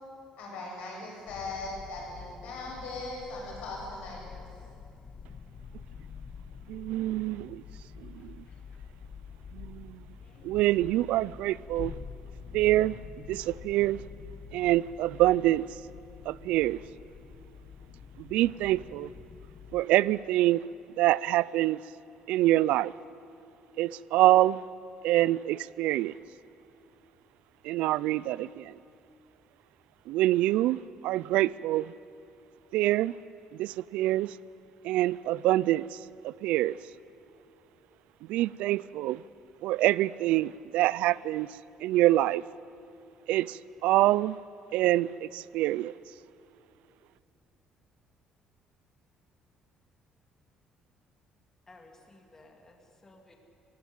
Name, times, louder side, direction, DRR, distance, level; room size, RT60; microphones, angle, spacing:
voice 1, 0.4-4.5, left 2 dB, 85° left, -2 dB, 7.1 m, -39 dB
sound 1, 1.3-19.9, left 6 dB, 50° left, 1.0 m, -47 dB
voice 2, 6.7-7.6 8.0-8.4 9.5-10.1 10.4-12.0 12.5-14.0 14.5-15.8 16.3-16.8 18.2-19.1 19.7-20.7 21.0-21.8 22.3-22.9 23.8-24.6 25.0-26.2 27.6-28.8 30.1-31.9 32.7-33.2 33.5-34.4 34.8-36.8 38.2-39.2 39.6-42.4 43.3-44.4 44.7-45.9, right 15 dB, 85° right, 22 dB, 0.4 m, -26 dB
voice 3, 51.7-53.3, left 2 dB, 20° left, 3 dB, 2.1 m, -56 dB
17.5 x 16.0 x 9.5 m, 2.6 s
cardioid pair, 120°, 2 cm